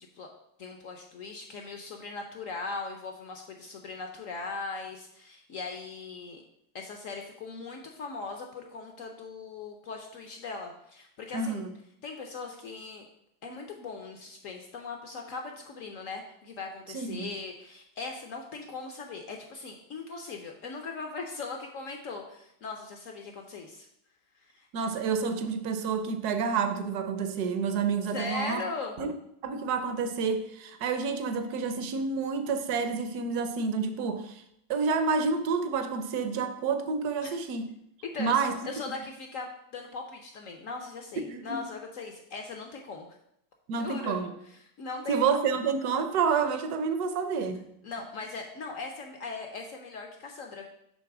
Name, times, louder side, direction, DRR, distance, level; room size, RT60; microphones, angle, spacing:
voice 1, 0.6-6.4 6.7-11.7 12.0-13.1 13.4-23.9 24.5-24.7 28.1-28.9 37.2-37.4 38.1-43.1 43.7-44.2 44.8-45.2 47.8-50.7, left 4 dB, 70° left, 3 dB, 0.7 m, -39 dB
voice 2, 11.3-11.7 16.9-17.3 24.7-28.6 29.0-29.1 29.4-34.4 34.7-37.7 38.2-38.5 41.3-41.6 43.7-44.3 45.1-47.7, right 5 dB, 65° right, 8 dB, 1.0 m, -29 dB
7.0 x 3.2 x 5.9 m, 0.75 s
omnidirectional pair, 2.1 m